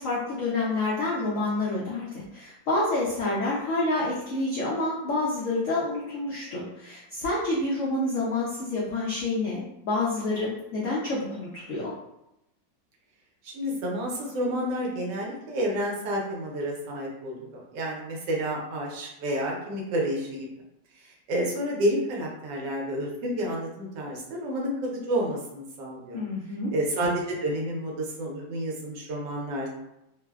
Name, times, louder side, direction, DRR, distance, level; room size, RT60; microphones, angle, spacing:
voice 1, 0.0-11.9 26.1-26.7, left 2 dB, 90° left, -6 dB, 0.6 m, -28 dB
voice 2, 13.4-20.5 21.3-26.2 26.7-29.7, equal, 75° right, -1 dB, 1.2 m, -30 dB
3.1 x 2.0 x 2.2 m, 0.86 s
omnidirectional pair, 2.0 m